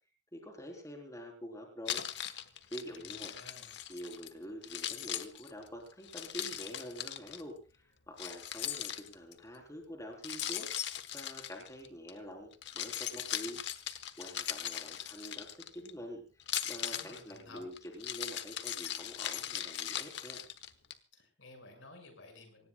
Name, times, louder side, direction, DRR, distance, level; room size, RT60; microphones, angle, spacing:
voice 1, 0.3-2.1 2.7-3.3 3.9-10.7 11.1-13.6 14.2-15.5 15.7-20.4, equal, 15° left, 2 dB, 3.7 m, -46 dB
Keys jangling, 1.9-4.3 4.6-7.4 8.2-9.4 10.2-12.1 12.5-15.9 16.4-20.9, left 11 dB, 65° left, 1.1 m, -39 dB
voice 2, 2.8-3.7 16.8-17.6 21.1-22.7, left 2 dB, 85° left, 4 dB, 6.0 m, -54 dB
26.0 x 18.5 x 2.3 m, 0.32 s
head